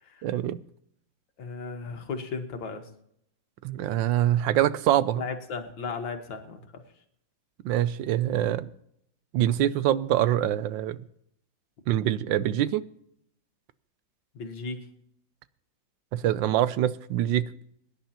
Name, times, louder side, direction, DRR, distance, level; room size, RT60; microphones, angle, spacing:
voice 1, 0.2-0.6 3.6-5.2 7.6-8.7 9.3-11.0 11.9-12.8 16.1-17.5, right 12 dB, 75° right, 15 dB, 1.3 m, -24 dB
voice 2, 1.4-2.9 5.1-6.6 14.4-14.9, left 4 dB, 70° left, 5 dB, 2.1 m, -35 dB
22.5 x 10.5 x 2.9 m, 0.71 s
omnidirectional pair, 2.1 m